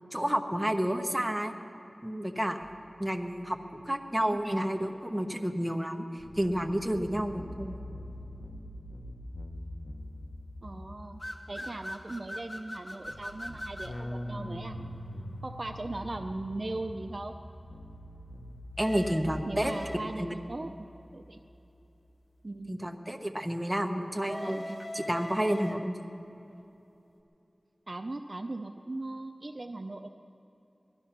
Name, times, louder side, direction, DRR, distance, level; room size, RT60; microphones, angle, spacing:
voice 1, 0.1-1.5 2.0-2.7 3.0-7.8 18.8-19.7 20.2-20.3 22.7-24.6 24.9-25.9, equal, 10° right, 4 dB, 1.0 m, -30 dB
sound 1, 2.6-4.0 6.2-22.2, left 1 dB, 65° left, 1.2 m, -44 dB
voice 2, 10.6-11.2 11.5-14.8 15.4-17.3 19.5-20.7 21.1-21.4 22.4-22.8 24.4-24.9 27.9-30.1, right 2 dB, 50° right, 5 dB, 0.6 m, -39 dB
sound 2, 11.2-14.0 18.8-20.3 24.2-26.1, left 1 dB, 30° left, 1.3 m, -40 dB
20.0 x 12.5 x 5.8 m, 3.0 s
wide cardioid pair, 65°, 0 cm